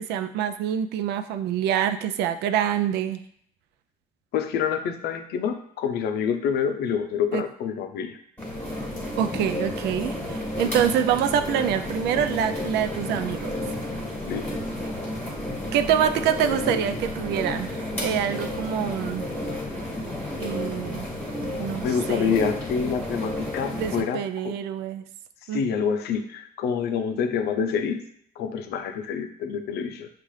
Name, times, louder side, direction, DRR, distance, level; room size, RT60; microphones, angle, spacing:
voice 1, 0.0-3.2 7.3-7.4 9.1-13.5 15.7-19.3 20.4-21.1 21.6-22.3 23.7-25.0 25.5-25.8, right 9 dB, 80° right, 9 dB, 0.4 m, -26 dB
voice 2, 4.3-8.2 14.2-14.5 21.8-24.5 25.5-28.0 28.4-30.1, left 7 dB, 70° left, 7 dB, 0.5 m, -27 dB
sound 1, 8.4-24.0, left 1 dB, 10° left, 1.4 m, -31 dB
5.5 x 2.4 x 3.1 m, 0.64 s
cardioid pair, 110°, 17 cm